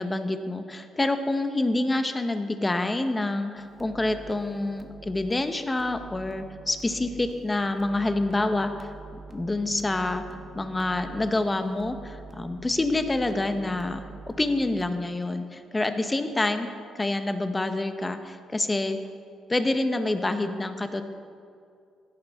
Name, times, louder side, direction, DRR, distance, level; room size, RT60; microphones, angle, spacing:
voice 1, 0.0-10.2 10.5-14.0 14.4-16.7 16.9-19.0 19.5-21.0, left 2 dB, 20° left, 8 dB, 0.9 m, -27 dB
sound 1, 3.6-14.9, right 3 dB, 35° right, 1.2 m, -46 dB
16.0 x 10.5 x 3.6 m, 2.3 s
cardioid pair, 90°, 0 cm